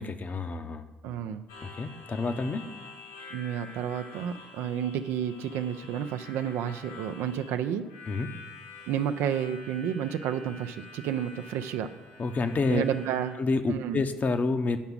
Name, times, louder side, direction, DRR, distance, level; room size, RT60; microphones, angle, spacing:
voice 1, 0.0-0.9 1.6-2.7 8.1-8.4 12.2-12.8 13.4-14.8, left 3 dB, 40° left, 8 dB, 1.0 m, -29 dB
voice 2, 1.0-1.4 3.3-7.9 8.9-11.9 12.7-13.4 13.7-14.0, right 9 dB, 65° right, 9 dB, 0.6 m, -31 dB
Harmonica, 1.5-13.3, left 3 dB, 80° left, 3.6 m, -48 dB
9.3 x 5.8 x 7.2 m, 1.1 s
hypercardioid pair, 50°, 4 cm